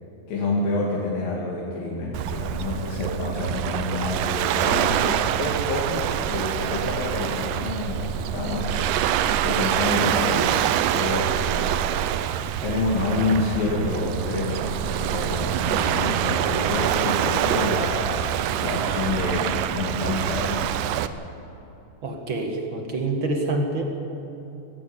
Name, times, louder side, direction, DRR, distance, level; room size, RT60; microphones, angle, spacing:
voice 1, 0.3-8.8 9.4-10.6 10.9-12.1 12.6-18.2 18.5-20.8, left 2 dB, 70° left, -5 dB, 4.2 m, -28 dB
Waves surf, 2.1-21.1, right 11 dB, 75° right, 2.1 m, -25 dB
voice 2, 22.0-23.8, right 2 dB, 40° right, 3 dB, 2.3 m, -26 dB
18.5 x 17.0 x 8.7 m, 2.9 s
omnidirectional pair, 4.2 m